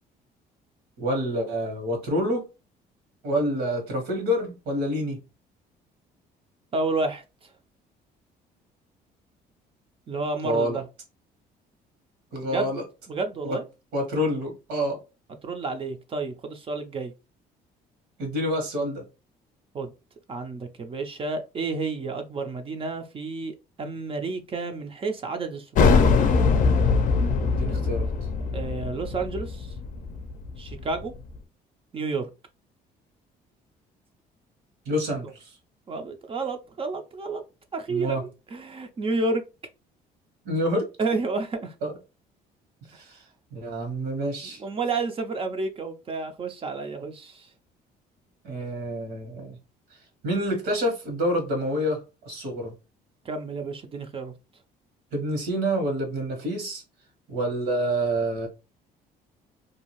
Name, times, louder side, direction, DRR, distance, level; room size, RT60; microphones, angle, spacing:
voice 1, 1.0-2.4 3.2-5.2 10.4-10.8 12.3-12.8 13.4-13.6 13.9-15.0 18.2-19.0 27.4-28.1 34.8-35.5 37.9-38.2 40.4-40.9 41.8-41.9 42.9-43.2 43.5-44.6 48.4-49.6 50.2-52.0 52.2-52.7 55.1-56.8 57.3-58.5, equal, 80° right, 1.3 m, -27 dB
voice 2, 6.7-7.2 10.1-10.8 12.5-12.7 13.1-13.6 15.4-17.1 19.7-19.9 20.3-26.0 28.5-29.7 30.6-31.1 31.9-32.3 35.2-35.3 35.9-37.4 37.7-39.4 41.0-41.7 44.6-47.5 53.2-54.3, right 3 dB, 35° right, 0.5 m, -30 dB
sound 1, 25.7-31.1, left 4 dB, 50° left, 0.5 m, -22 dB
2.6 x 2.3 x 3.0 m
cardioid pair, 110°, 17 cm